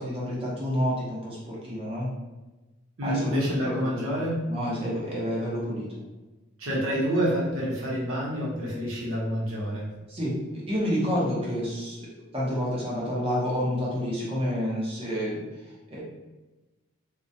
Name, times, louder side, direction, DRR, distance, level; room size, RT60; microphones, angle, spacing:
voice 1, 0.0-2.1 3.0-4.0 4.5-5.9 10.1-12.1 12.3-16.0, equal, 25° right, -6 dB, 0.7 m, -29 dB
voice 2, 3.0-4.4 6.6-9.9, equal, 80° right, -5 dB, 0.9 m, -28 dB
2.2 x 2.1 x 2.7 m, 1.1 s
head